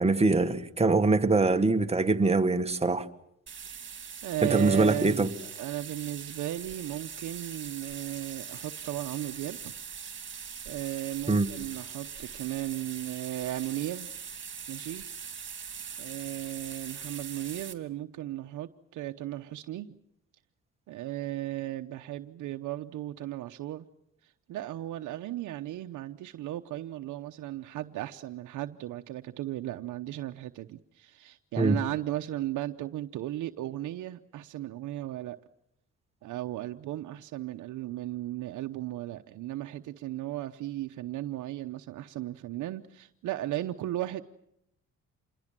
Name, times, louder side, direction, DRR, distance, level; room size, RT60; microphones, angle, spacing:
voice 1, 0.0-3.1 4.4-5.3 11.3-11.5 31.6-31.8, right 3 dB, 20° right, 1.6 m, -23 dB
sound 1, 3.5-17.7, right 7 dB, 40° right, 3.0 m, -42 dB
voice 2, 4.2-9.7 10.7-14.1 14.7-15.0 16.0-19.9 20.9-23.9 24.2-35.4 36.2-44.2, right 14 dB, 80° right, 0.9 m, -36 dB
27.5 x 21.0 x 7.5 m
cardioid pair, 90°, 30 cm